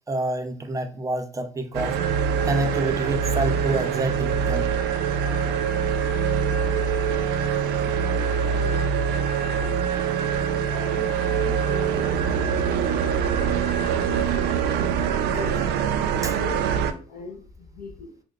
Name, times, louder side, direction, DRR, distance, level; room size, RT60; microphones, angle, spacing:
voice 1, 0.1-1.9 2.4-4.7 16.2-16.4, right 2 dB, 20° right, 0.6 m, -27 dB
sound 1, 1.7-16.9, right 7 dB, 80° right, 0.5 m, -24 dB
voice 2, 8.1-8.9 9.3-9.9 10.6-14.3 15.3-15.6 16.4-18.2, left 4 dB, 65° left, 1.3 m, -40 dB
6.0 x 2.1 x 2.4 m
cardioid pair, 110°, 17 cm